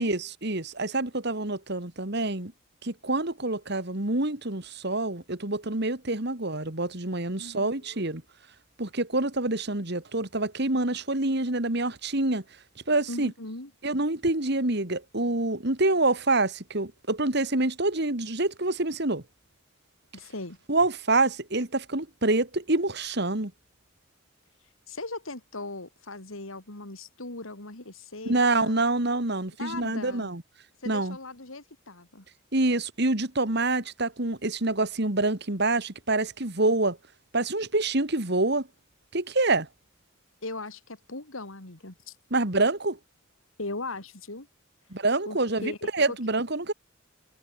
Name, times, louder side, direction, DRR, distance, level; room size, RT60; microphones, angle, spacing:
voice 1, 0.0-2.5 2.8-8.2 8.8-12.4 12.9-13.3 13.8-19.2 20.7-23.5 28.3-30.4 30.9-31.2 32.5-37.0 37.3-38.7 39.1-39.7 42.3-43.0 44.9-46.7, right 2 dB, 55° right, 2.6 m, -26 dB
voice 2, 7.4-8.1 13.1-13.7 20.1-20.6 24.9-28.8 29.6-30.3 30.8-32.3 40.4-42.1 43.6-44.5 45.3-46.2, left 2 dB, 80° left, 3.4 m, -39 dB
head